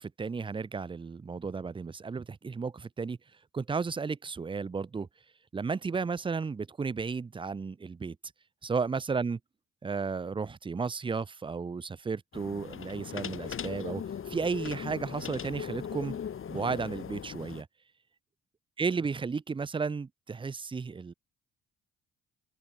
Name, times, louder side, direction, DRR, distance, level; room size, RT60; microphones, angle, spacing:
voice 1, 0.0-3.2 3.5-5.1 5.5-8.2 8.6-9.4 9.8-16.1 16.5-17.7 18.8-21.1, right 5 dB, 15° right, 0.4 m, -33 dB
sound 1, 12.3-17.6, left 8 dB, 35° left, 0.7 m, -39 dB
open air
hypercardioid pair, 45°, 39 cm